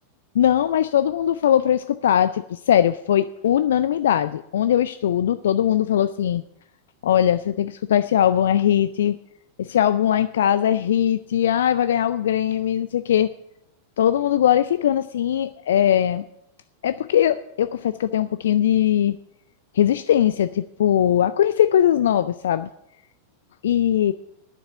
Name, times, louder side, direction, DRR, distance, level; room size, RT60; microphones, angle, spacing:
voice 1, 0.3-6.4 7.0-9.2 9.6-13.3 14.0-16.2 16.8-19.2 19.7-22.7 23.6-24.1, left 10 dB, 60° left, 14 dB, 0.3 m, -20 dB
9.6 x 7.1 x 8.9 m, 0.82 s
figure-of-eight pair, 90°, 0 cm